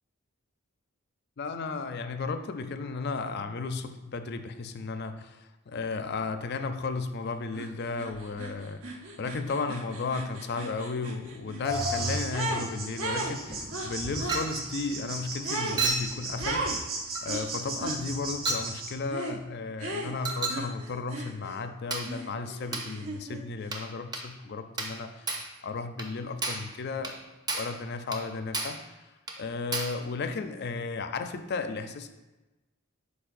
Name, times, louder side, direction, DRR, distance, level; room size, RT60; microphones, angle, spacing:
voice 1, 1.4-25.3 25.6-27.2 27.5-29.0 29.4-32.1, left 4 dB, 50° left, 9 dB, 0.4 m, -34 dB
sound 1, 7.5-7.7 8.0-12.7 13.0-14.4 15.4-15.8 16.4-16.8 17.3-18.0 19.1-19.4 19.8-21.6 22.0-23.4, right 2 dB, 70° right, 0.9 m, -36 dB
sound 2, 11.6-18.9, right 1 dB, 45° right, 1.3 m, -35 dB
Chink clink, 14.3-14.6 15.8-16.1 17.1-17.3 18.5-18.7 20.2-20.7 21.9-22.1 22.7-22.9 23.7-23.9 24.1-24.3 24.8-25.0 25.3-25.5 26.0-26.1 26.4-26.7 27.0-27.2 27.5-27.8 28.1-28.3 28.5-28.8 29.3-29.4 29.7-30.0, right 3 dB, 20° right, 0.6 m, -32 dB
10.0 x 4.2 x 2.5 m, 1.1 s
head